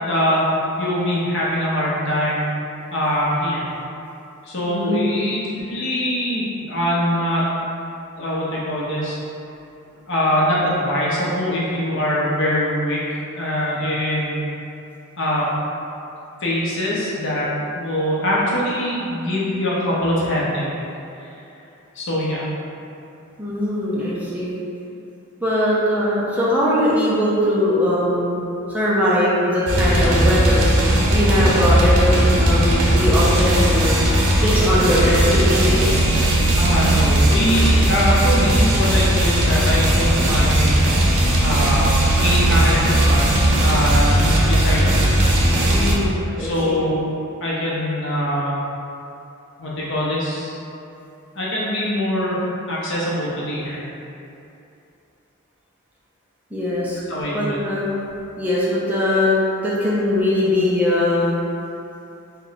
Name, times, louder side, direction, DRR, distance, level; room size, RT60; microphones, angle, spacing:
voice 1, 0.1-0.5 0.8-2.5 2.9-3.7 4.4-7.5 8.2-9.2 10.1-13.0 13.3-14.4 15.2-15.5 16.4-20.7 21.2-21.3 21.9-22.5 36.6-40.8 41.4-45.1 46.4-47.1 47.4-48.6 49.6-50.5 51.3-52.4 52.7-53.8 57.1-57.6, equal, 60° left, -7 dB, 0.8 m, -23 dB
voice 2, 4.7-5.2 23.4-24.5 25.4-35.9 45.7-46.9 56.5-57.0 57.3-58.0 58.4-59.4 59.6-61.4, left 1 dB, 5° right, -8 dB, 0.4 m, -21 dB
sound 1, 29.7-45.9, right 1 dB, 85° right, 0.6 m, -17 dB
3.1 x 2.2 x 3.9 m, 2.8 s
head